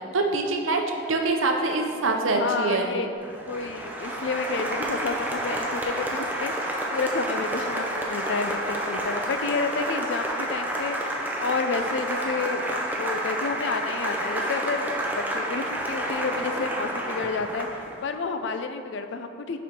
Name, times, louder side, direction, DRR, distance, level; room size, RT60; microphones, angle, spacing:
voice 1, 0.1-3.0, right 3 dB, 85° right, 3 dB, 0.7 m, -24 dB
voice 2, 2.4-3.1 3.4-17.7 18.0-19.6, left 4 dB, 65° left, 8 dB, 0.4 m, -30 dB
Applause, 3.2-18.0, right 1 dB, 10° right, 0.5 m, -30 dB
5.1 x 4.4 x 5.2 m, 2.6 s
head